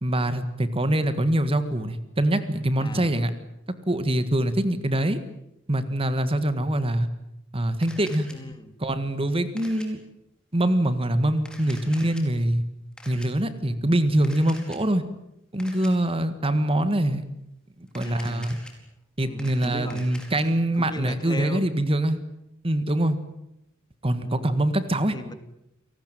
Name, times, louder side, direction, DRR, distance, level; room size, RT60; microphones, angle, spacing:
voice 1, 0.0-3.3 3.9-5.2 5.7-7.1 7.5-8.3 8.8-10.0 10.5-12.6 13.0-15.0 15.5-17.2 17.8-18.6 19.2-22.2 22.6-23.2 24.0-25.1, right 1 dB, 25° right, 11 dB, 1.7 m, -24 dB
Camera, 7.8-8.4 9.6-9.9 11.4-12.2 13.0-13.3 14.2-14.8 15.6-15.9 17.9-18.7 19.2-20.4, left 1 dB, 5° left, 4.6 m, -45 dB
voice 2, 8.3-8.7 18.0-18.5 19.2-20.0 20.8-21.6 24.2-24.6 25.1-25.3, left 1 dB, 20° left, 10 dB, 2.0 m, -37 dB
29.5 x 18.5 x 9.2 m, 0.85 s
head